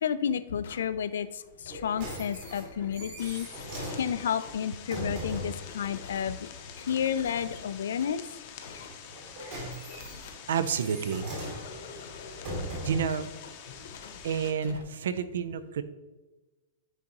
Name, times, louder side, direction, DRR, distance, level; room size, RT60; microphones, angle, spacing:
voice 1, 0.0-3.5 4.0-6.5 6.9-8.2, left 8 dB, 90° left, 15 dB, 0.4 m, -31 dB
sound 1, 0.6-0.8 1.5-4.5 4.9-6.5 6.8-7.6 8.0-8.1 8.6-8.9 9.4-10.3 11.3-14.8, left 5 dB, 70° left, 0.9 m, -47 dB
sound 2, 1.6-5.7 9.0-13.2 13.9-14.0, right 1 dB, 40° right, 1.7 m, -40 dB
sound 3, 3.2-14.5, left 8 dB, 35° left, 0.6 m, -47 dB
voice 2, 10.5-11.3 12.8-13.3 14.2-15.8, right 7 dB, 85° right, 13 dB, 0.5 m, -29 dB
9.8 x 3.8 x 2.9 m, 1.1 s
supercardioid pair, 180°, 0 cm